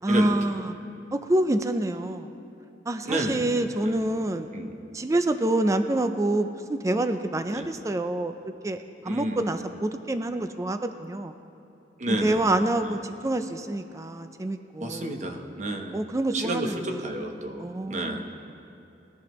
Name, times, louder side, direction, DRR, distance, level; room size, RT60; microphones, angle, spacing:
voice 1, 0.0-0.8 1.1-2.4 2.9-4.5 4.9-8.3 8.6-11.3 12.1-15.1 15.9-17.1 17.6-18.4, right 1 dB, 15° right, 8 dB, 0.4 m, -27 dB
voice 2, 3.1-3.5 3.9-4.0 4.5-4.8 7.5-7.7 9.1-9.4 12.0-12.4 12.8-12.9 14.8-16.0 16.3-18.2, right 1 dB, 40° right, 3 dB, 1.0 m, -30 dB
20.0 x 10.5 x 3.1 m, 2.9 s
head